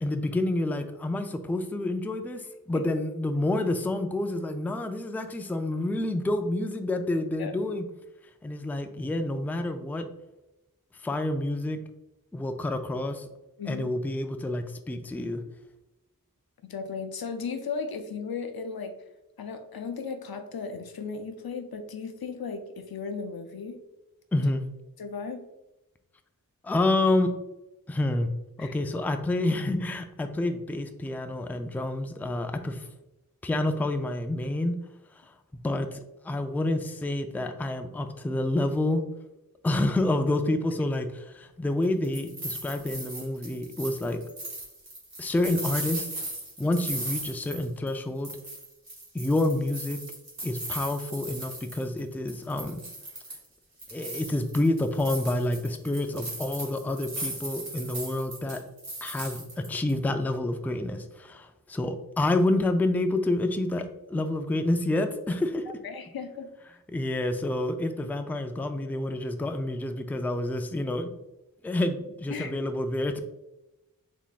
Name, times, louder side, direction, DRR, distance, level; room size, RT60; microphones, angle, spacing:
voice 1, 0.0-7.9 8.4-10.0 11.0-11.8 12.3-13.3 13.7-15.4 24.3-24.7 26.6-27.3 27.9-28.3 28.6-32.9 33.4-34.8 35.6-36.0 36.2-39.0 39.6-44.2 45.2-46.1 46.6-48.3 49.1-50.0 50.4-52.8 53.9-58.6 59.0-65.6 66.9-71.1 71.6-73.2, left 1 dB, 5° left, 7 dB, 0.3 m, -28 dB
voice 2, 16.6-19.0 19.4-23.8 25.0-25.4 28.6-28.7 65.7-66.5 72.3-72.5, left 5 dB, 85° left, 7 dB, 0.5 m, -36 dB
sound 1, 41.8-48.0 48.2-52.0 52.3-53.5 53.8-59.9, right 1 dB, 80° right, 1.5 m, -38 dB
3.6 x 3.6 x 2.4 m, 0.95 s
wide cardioid pair, 40°, 36 cm